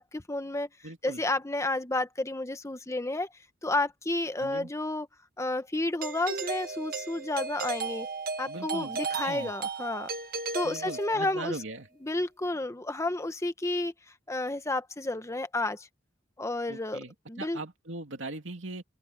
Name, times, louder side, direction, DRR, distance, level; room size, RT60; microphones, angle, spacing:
voice 1, 0.0-0.7 1.0-3.3 3.6-5.1 5.4-8.1 8.4-10.1 10.5-11.5 12.0-13.9 14.3-15.9 16.4-17.6, left 2 dB, 15° left, 1.0 m, -31 dB
voice 2, 0.8-1.2 4.4-4.7 8.4-9.5 10.6-11.9 16.7-18.8, right 2 dB, 70° right, 2.8 m, -40 dB
Doorbell, 6.0-11.4, right 4 dB, 50° right, 1.8 m, -35 dB
open air
head